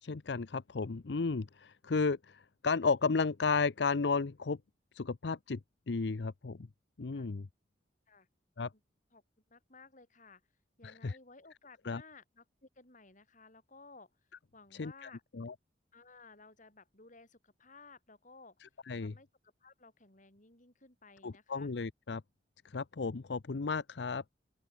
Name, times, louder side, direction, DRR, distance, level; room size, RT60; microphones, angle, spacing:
voice 1, 0.0-4.6 4.9-5.6 5.9-6.7 7.0-7.5 8.6-8.7 10.8-11.2 11.9-12.0 14.8-15.5 18.9-19.1 21.2-22.2 22.6-24.2, left 4 dB, 70° left, 0.6 m, -33 dB
voice 2, 9.5-10.4 10.8-14.1 14.5-15.2 15.9-18.7 19.0-19.3 19.6-21.7, left 3 dB, 45° left, 6.8 m, -57 dB
open air
head